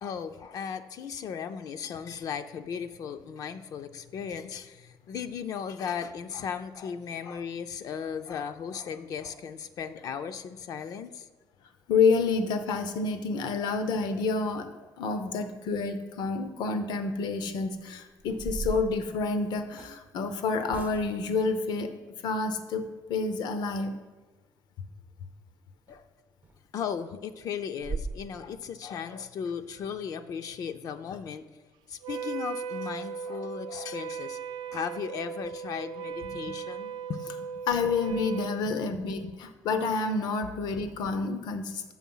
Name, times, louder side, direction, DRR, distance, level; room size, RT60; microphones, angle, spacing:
voice 1, 0.0-11.3 25.9-26.0 26.7-31.4 31.9-34.4 34.7-37.2 38.6-38.8 39.2-39.3, left 7 dB, 55° left, 9 dB, 0.4 m, -36 dB
voice 2, 11.9-14.7 15.0-21.9 22.2-22.8 23.1-23.9 37.7-41.9, left 4 dB, 80° left, 10 dB, 0.7 m, -28 dB
sound 1, 18.2-20.0 20.7-21.3 25.9-26.0 26.4-26.5 26.9-27.0 27.4-27.5 27.8-28.2, right 4 dB, 25° right, 0.4 m, -37 dB
Wind instrument woodwind instrument, 32.0-38.6, right 6 dB, 85° right, 0.5 m, -37 dB
7.3 x 5.9 x 5.5 m, 1.3 s
cardioid pair, 160°, 7 cm